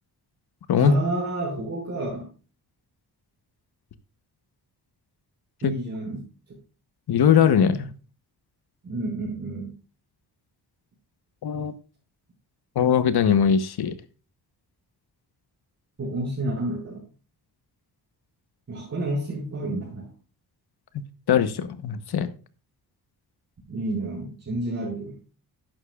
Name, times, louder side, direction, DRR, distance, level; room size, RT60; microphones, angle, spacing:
voice 1, 0.8-2.3 5.6-6.2 8.8-9.7 11.5-11.6 16.0-17.0 18.7-20.0 23.7-25.2, right 1 dB, 40° right, -5 dB, 5.6 m, -29 dB
voice 2, 7.1-8.0 11.4-11.7 12.7-14.0 20.9-22.3, left 8 dB, 70° left, 12 dB, 1.2 m, -21 dB
11.5 x 10.0 x 2.4 m, 0.35 s
wide cardioid pair, 115°, 40 cm